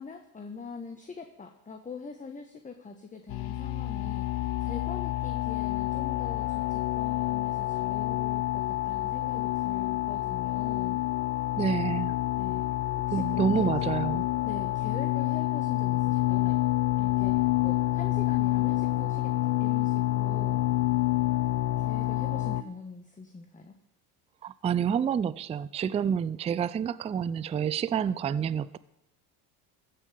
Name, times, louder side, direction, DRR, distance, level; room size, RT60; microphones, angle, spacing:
voice 1, 0.0-11.0 12.4-12.7 13.1-14.0 14.4-16.6 17.0-20.6 21.8-23.7, left 4 dB, 20° left, 6 dB, 1.2 m, -43 dB
sound 1, 3.3-22.6, left 16 dB, 55° left, 0.7 m, -28 dB
voice 2, 11.6-12.2 13.1-14.3 24.4-28.8, right 8 dB, 15° right, 18 dB, 0.3 m, -28 dB
14.5 x 5.6 x 8.4 m, 0.84 s
hypercardioid pair, 80°, 43 cm